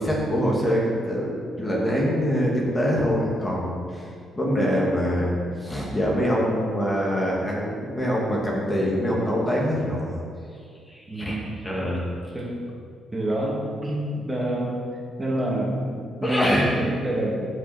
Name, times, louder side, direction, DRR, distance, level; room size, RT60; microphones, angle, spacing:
voice 1, 0.0-4.1 4.4-5.3 5.6-10.1 10.9-11.4 11.6-12.0 16.2-16.7, equal, 20° left, -4 dB, 2.5 m, -24 dB
voice 2, 11.1-11.6 12.3-12.6 13.1-14.9 15.2-17.4, right 1 dB, 20° right, -3 dB, 2.8 m, -27 dB
15.5 x 6.2 x 4.5 m, 2.2 s
cardioid pair, 90°, 0 cm